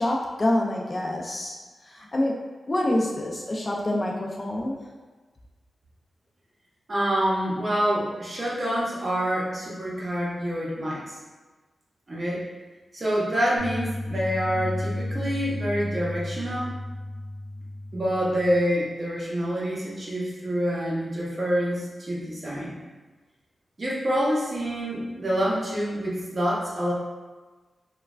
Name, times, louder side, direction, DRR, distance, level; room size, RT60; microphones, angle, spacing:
voice 1, 0.0-1.6 1.8-2.4 2.7-4.8, left 1 dB, 30° left, -2 dB, 0.3 m, -26 dB
voice 2, 6.9-11.2 12.1-12.5 12.9-16.8 17.9-22.8 23.8-26.9, equal, 35° right, -6 dB, 0.7 m, -27 dB
sound 1, 13.6-18.6, left 1 dB, 85° left, 0.6 m, -33 dB
3.1 x 2.1 x 2.3 m, 1.3 s
wide cardioid pair, 120°, 0 cm